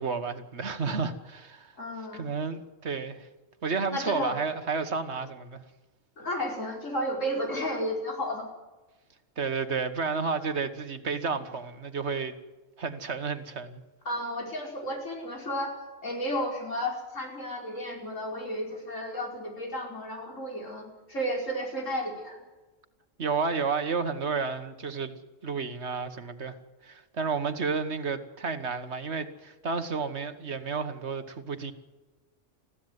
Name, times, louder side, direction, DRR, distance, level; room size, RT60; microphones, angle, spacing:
voice 1, 0.0-1.7 2.1-3.3 3.6-5.6 9.4-12.3 12.8-13.8 23.2-26.6 26.8-31.7, right 5 dB, 60° right, 1.6 m, -31 dB
voice 2, 1.8-2.3 3.9-4.4 6.2-8.5 14.1-15.7 16.0-22.4, equal, 75° left, 5.5 m, -32 dB
21.0 x 15.5 x 9.4 m
omnidirectional pair, 1.3 m